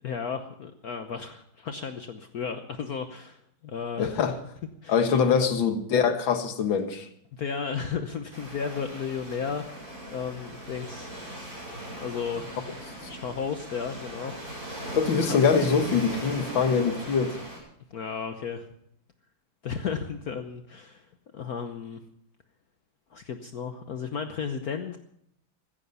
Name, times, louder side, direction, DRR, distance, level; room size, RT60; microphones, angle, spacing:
voice 1, 0.0-4.3 4.8-5.0 5.4-5.5 7.3-11.1 12.0-12.5 13.1-14.7 15.3-15.4 17.9-18.7 19.6-21.1 21.3-22.0 23.1-25.0, left 6 dB, 55° left, 1.3 m, -34 dB
voice 2, 4.0-4.3 4.9-7.1 14.9-17.3, left 6 dB, 80° left, 2.2 m, -23 dB
Waves surf, 8.3-17.6, right 1 dB, 50° right, 8.6 m, -39 dB
15.0 x 15.0 x 5.5 m
omnidirectional pair, 2.1 m